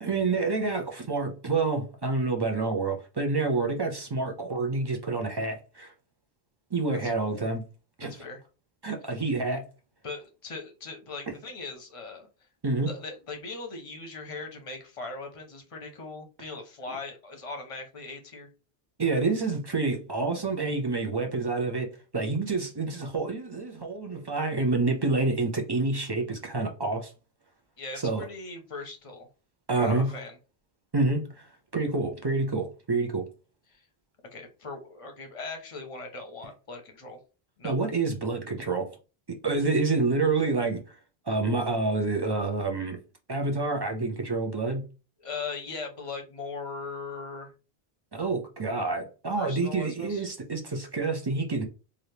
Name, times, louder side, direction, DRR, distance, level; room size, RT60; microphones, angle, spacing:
voice 1, 0.0-5.9 6.7-7.7 8.0-8.1 8.8-9.6 12.6-12.9 19.0-21.9 22.1-27.1 28.0-28.2 29.7-30.1 30.9-31.5 31.7-33.3 37.6-38.9 39.4-40.8 41.3-43.0 43.3-44.8 48.1-51.7, right 3 dB, 30° right, 0.5 m, -28 dB
voice 2, 8.1-8.4 9.1-9.2 10.0-12.3 12.9-18.5 27.8-29.3 29.7-30.4 33.7-33.8 34.3-37.2 37.6-37.8 45.2-47.5 49.3-50.3, left 4 dB, 35° left, 0.8 m, -39 dB
3.4 x 2.5 x 2.8 m
omnidirectional pair, 1.0 m